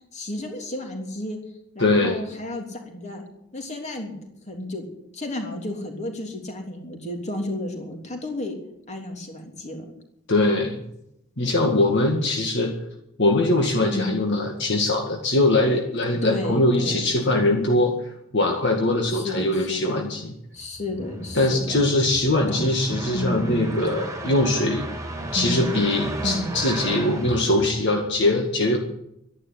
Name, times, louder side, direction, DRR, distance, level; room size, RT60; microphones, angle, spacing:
voice 1, 0.1-1.4 1.7-3.2 3.5-4.2 4.5-4.8 5.1-8.6 8.9-9.8 13.9-14.2 16.2-17.1 19.1-20.0 20.5-21.8 22.5-22.7 23.1-23.4 25.3-25.7 26.2-26.5, left 1 dB, 35° left, 3 dB, 3.3 m, -32 dB
voice 2, 1.8-2.2 10.3-10.8 11.4-12.7 13.2-18.0 18.3-20.3 21.4-24.8 25.3-28.8, left 2 dB, 55° left, 1 dB, 2.0 m, -22 dB
sound 1, 20.6-28.2, right 1 dB, 15° right, 2.7 m, -34 dB
12.5 x 11.0 x 9.9 m, 0.79 s
head